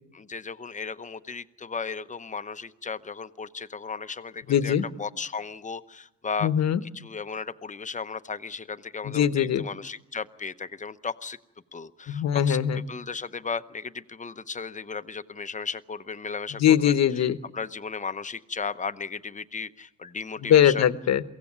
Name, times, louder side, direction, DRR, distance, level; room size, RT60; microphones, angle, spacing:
voice 1, 0.1-6.5 6.8-11.4 11.7-12.6 12.9-17.0 17.5-20.9, left 5 dB, 25° left, 12 dB, 0.8 m, -35 dB
voice 2, 4.5-4.8 6.4-6.8 9.0-9.6 12.1-12.8 16.6-17.4 20.4-21.2, left 9 dB, 60° left, 13 dB, 1.1 m, -21 dB
23.0 x 16.5 x 9.7 m, 1.0 s
cardioid pair, 90°, 30 cm